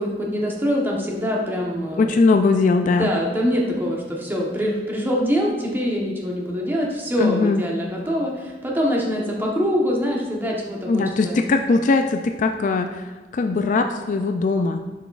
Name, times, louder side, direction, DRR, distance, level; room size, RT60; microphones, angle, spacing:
voice 1, 0.0-2.1 2.8-11.4, equal, 10° right, -2 dB, 1.0 m, -24 dB
voice 2, 2.0-3.1 7.2-7.6 10.9-13.0 13.3-14.8, left 3 dB, 45° left, 6 dB, 0.3 m, -20 dB
7.1 x 5.9 x 2.4 m, 1.4 s
head